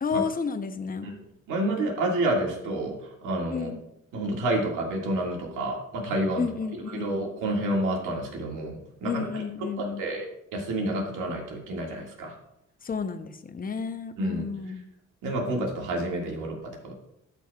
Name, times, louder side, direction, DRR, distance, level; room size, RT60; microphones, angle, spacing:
voice 1, 0.0-1.1 3.5-3.8 6.4-7.0 9.0-10.0 12.8-14.8, left 5 dB, 30° left, 9 dB, 0.7 m, -31 dB
voice 2, 1.5-3.7 4.1-6.5 6.9-12.4 14.2-14.5 15.2-16.9, right 1 dB, 90° right, 0 dB, 2.0 m, -29 dB
12.5 x 6.1 x 2.3 m, 0.79 s
cardioid pair, 90°, 30 cm